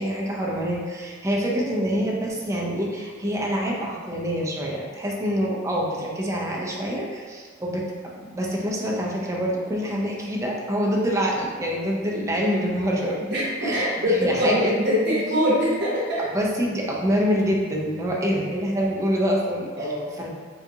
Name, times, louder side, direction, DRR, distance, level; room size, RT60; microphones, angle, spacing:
voice 1, 0.0-13.2 13.6-13.9 14.2-14.8 16.3-20.3, equal, 15° right, -3 dB, 0.5 m, -26 dB
voice 2, 13.2-16.2 18.3-18.4 19.8-20.1, equal, 55° right, -8 dB, 0.8 m, -23 dB
3.7 x 2.3 x 2.7 m, 1.5 s
head